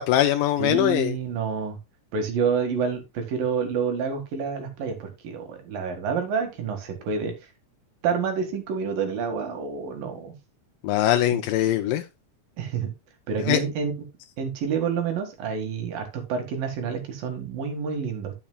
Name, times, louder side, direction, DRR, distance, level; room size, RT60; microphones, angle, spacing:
voice 1, 0.0-1.1 10.8-12.0 13.5-13.6, left 12 dB, 80° left, 2.2 m, -22 dB
voice 2, 0.6-1.8 2.1-7.3 8.0-10.3 11.3-11.4 12.6-12.9 13.3-13.9 14.4-18.3, right 6 dB, 80° right, 3.5 m, -28 dB
11.5 x 7.1 x 2.3 m
omnidirectional pair, 4.0 m